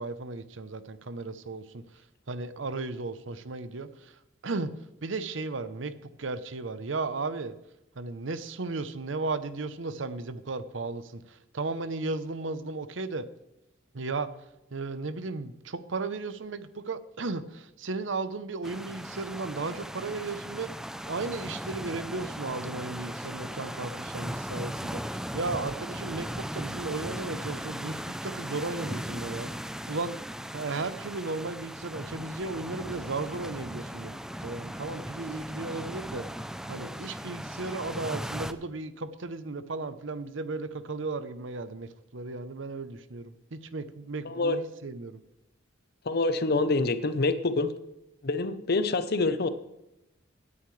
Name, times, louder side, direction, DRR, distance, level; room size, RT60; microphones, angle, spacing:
voice 1, 0.0-1.8 2.3-4.1 4.4-4.7 5.0-5.9 6.2-7.6 8.0-13.3 13.9-14.3 14.7-20.7 21.0-29.5 29.9-30.2 30.5-34.1 34.4-36.3 36.7-45.2, right 3 dB, 75° right, 0.8 m, -35 dB
sound 1, 18.6-38.5, equal, 5° right, 0.5 m, -38 dB
voice 2, 44.3-44.6 46.1-47.7 48.2-49.5, left 3 dB, 55° left, 0.8 m, -26 dB
17.0 x 9.7 x 3.3 m
head